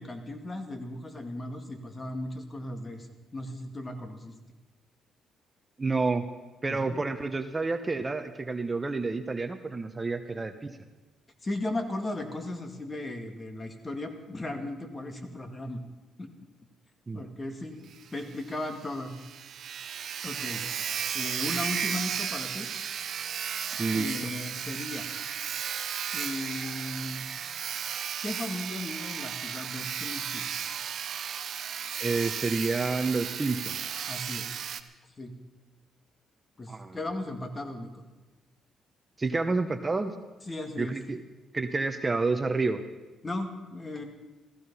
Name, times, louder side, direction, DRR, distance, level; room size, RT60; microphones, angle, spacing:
voice 1, 0.0-4.4 6.7-7.0 11.4-15.8 16.2-16.3 17.1-19.2 20.2-20.7 21.1-22.7 23.9-25.1 26.1-27.2 28.2-30.5 34.1-34.5 35.2-35.3 36.6-37.9 40.5-41.0 43.2-44.0, left 1 dB, 25° left, 6 dB, 2.1 m, -36 dB
voice 2, 5.8-6.3 6.6-10.8 17.1-17.2 23.8-24.2 32.0-33.8 36.7-37.0 39.2-40.1 40.8-41.2 41.5-42.8, right 3 dB, 25° right, 8 dB, 0.9 m, -29 dB
Sawing, 17.9-18.0 18.3-18.4 18.8-18.9 19.1-34.8, right 8 dB, 60° right, 0.9 m, -34 dB
15.5 x 15.0 x 5.6 m, 1.2 s
cardioid pair, 90°, 0 cm